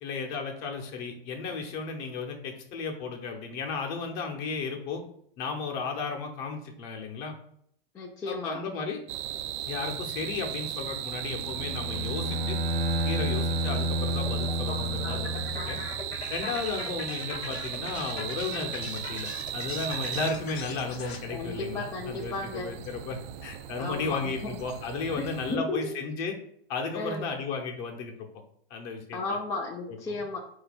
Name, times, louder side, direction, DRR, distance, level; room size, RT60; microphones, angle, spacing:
voice 1, 0.0-5.0 5.4-7.3 8.3-9.0 9.6-12.6 13.0-15.8 16.3-26.3 26.7-28.1 28.7-29.4 29.9-30.0, left 4 dB, 40° left, 3 dB, 1.0 m, -34 dB
voice 2, 7.9-8.6 21.3-22.7 23.8-24.5 25.2-25.3 25.5-25.8 26.9-27.3 29.1-30.4, left 3 dB, 10° left, 0 dB, 0.3 m, -34 dB
sound 1, 9.1-25.6, right 11 dB, 50° right, 0.5 m, -37 dB
Bowed string instrument, 11.3-16.1, equal, 80° right, 1.2 m, -30 dB
sound 2, 14.3-21.2, left 5 dB, 85° left, 0.9 m, -41 dB
4.3 x 2.8 x 4.2 m, 0.67 s
hypercardioid pair, 120°, 31 cm